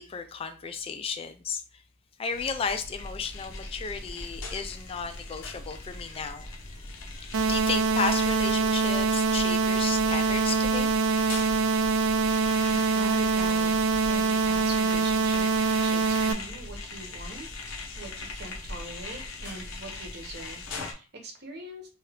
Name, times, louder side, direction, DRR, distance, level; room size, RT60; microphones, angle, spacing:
voice 1, 0.0-1.6 2.2-6.5 7.1-10.9, left 5 dB, 30° left, 0.3 m, -34 dB
sound 1, 2.3-20.9, left 2 dB, 70° left, 0.7 m, -40 dB
sound 2, 7.3-16.3, right 4 dB, 75° right, 0.4 m, -24 dB
voice 2, 12.3-13.7 14.0-17.5 18.0-21.9, right 2 dB, 55° right, 0.8 m, -42 dB
2.7 x 2.4 x 3.2 m
head